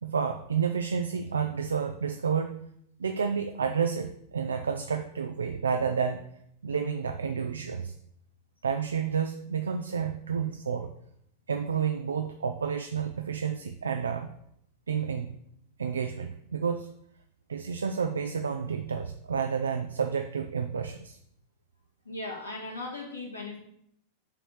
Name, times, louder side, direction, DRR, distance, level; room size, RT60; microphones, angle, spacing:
voice 1, 0.0-2.6 3.0-6.3 6.6-7.9 8.6-10.9 11.5-14.3 14.9-15.3 15.8-16.9 17.5-21.2, right 6 dB, 70° right, 7 dB, 0.4 m, -30 dB
voice 2, 22.1-23.6, left 2 dB, 85° left, -3 dB, 1.9 m, -37 dB
5.6 x 4.2 x 6.3 m, 0.73 s
figure-of-eight pair, 90°, 0 cm